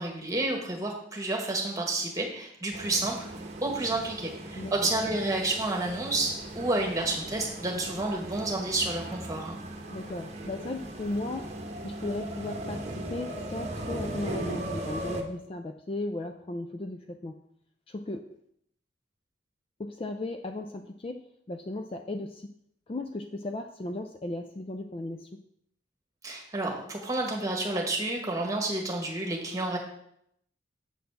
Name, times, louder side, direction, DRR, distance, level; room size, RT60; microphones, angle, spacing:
voice 1, 0.0-3.3 3.6-9.6 26.2-29.8, right 2 dB, 20° right, 0 dB, 1.5 m, -30 dB
sound 1, 2.7-15.2, right 1 dB, 35° right, 1.0 m, -38 dB
voice 2, 4.6-4.9 9.9-11.5 11.8-17.4 17.9-18.2 19.8-21.2 21.5-22.5 22.9-25.3, left 2 dB, 30° left, 6 dB, 0.4 m, -36 dB
7.6 x 4.1 x 6.9 m, 0.72 s
head